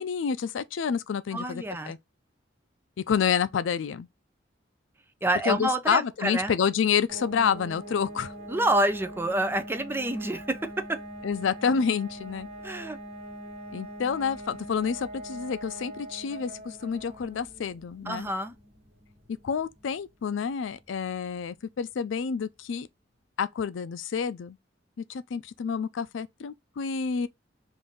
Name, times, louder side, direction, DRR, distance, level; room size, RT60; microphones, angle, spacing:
voice 1, 0.0-2.0 3.1-4.1 5.5-8.3 11.2-12.5 13.7-18.3 19.4-22.9 23.4-24.6 25.0-27.3, left 6 dB, 90° left, 0.4 m, -28 dB
voice 2, 1.3-1.9 5.2-6.5 8.5-11.0 12.6-13.0 18.1-18.5, right 1 dB, 10° right, 0.5 m, -28 dB
sound 1, 7.1-21.7, right 1 dB, 35° right, 1.2 m, -43 dB
3.6 x 2.6 x 3.7 m
head